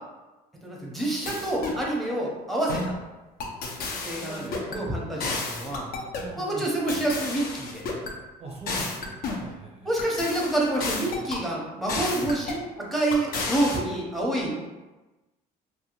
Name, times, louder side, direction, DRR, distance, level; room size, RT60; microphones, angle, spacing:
voice 1, 0.6-3.0 4.0-5.9 6.4-7.8 9.8-14.7, right 1 dB, ahead, -3 dB, 0.6 m, -28 dB
sound 1, 1.3-1.8 2.7-3.0 3.4-4.8 5.2-6.3 6.9-8.1 8.7-9.5 10.0-11.4 11.9-12.6 13.1-13.8, left 3 dB, 65° left, 0.5 m, -32 dB
voice 2, 4.1-5.3 6.2-6.7 8.4-9.9 13.3-13.4, right 2 dB, 35° right, -1 dB, 0.5 m, -42 dB
2.6 x 2.2 x 2.9 m, 1.1 s
cardioid pair, 110°, 17 cm